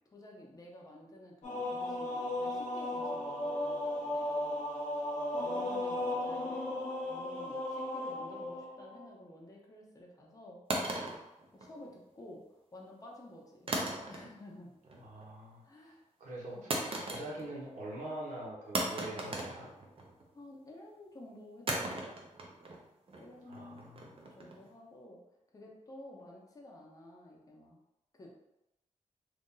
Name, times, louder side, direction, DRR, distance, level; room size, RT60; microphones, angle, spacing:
voice 1, 0.1-4.5 5.4-10.6 11.5-12.4 12.7-13.7 14.1-14.7 15.6-16.0 16.5-16.7 20.3-22.3 23.1-25.2 25.5-27.8 28.1-28.3, left 1 dB, 25° left, -2 dB, 0.7 m, -52 dB
sound 1, 1.4-9.1, left 1 dB, 70° left, 0.9 m, -36 dB
sound 2, 10.7-12.1 13.7-14.5 14.8-15.3 16.7-17.6 17.9-18.0 18.7-20.3 21.7-24.7, right 2 dB, 45° right, 0.6 m, -37 dB
voice 2, 14.9-15.6 16.2-16.7 17.0-19.7 23.4-24.1, right 1 dB, 75° right, -4 dB, 1.1 m, -44 dB
2.8 x 2.6 x 3.7 m, 0.92 s
wide cardioid pair, 115°, 13 cm